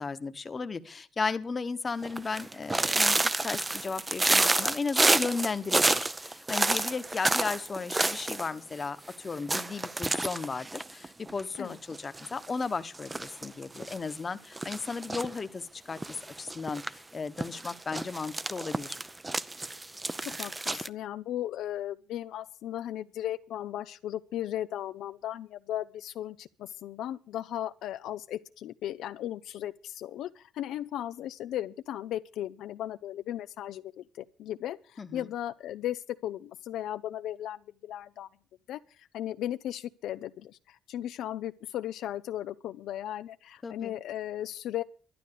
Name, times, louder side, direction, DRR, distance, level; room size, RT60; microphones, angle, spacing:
voice 1, 0.0-19.0 35.0-35.3 43.6-43.9, left 4 dB, 35° left, 1.2 m, -35 dB
sound 1, 2.0-8.5 8.7-8.8 9.1-9.2 9.5-11.6 11.9-12.5 12.9-14.0 14.6-15.4 16.0-16.9 17.4-20.9, right 2 dB, 20° right, 0.6 m, -29 dB
voice 2, 20.2-38.3 38.7-44.8, left 12 dB, 85° left, 0.6 m, -36 dB
12.0 x 11.0 x 6.8 m
cardioid pair, 90°, 0 cm